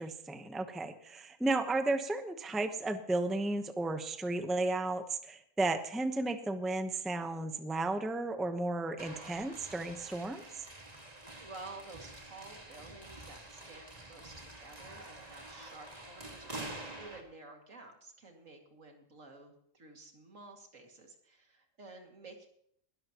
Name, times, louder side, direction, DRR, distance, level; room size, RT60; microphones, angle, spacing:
voice 1, 0.0-10.4, right 2 dB, ahead, 7 dB, 0.8 m, -33 dB
sound 1, 9.0-17.2, right 2 dB, 30° right, 2.0 m, -47 dB
voice 2, 11.4-22.5, right 3 dB, 75° right, 2 dB, 2.7 m, -52 dB
20.5 x 12.5 x 3.0 m, 0.69 s
omnidirectional pair, 1.4 m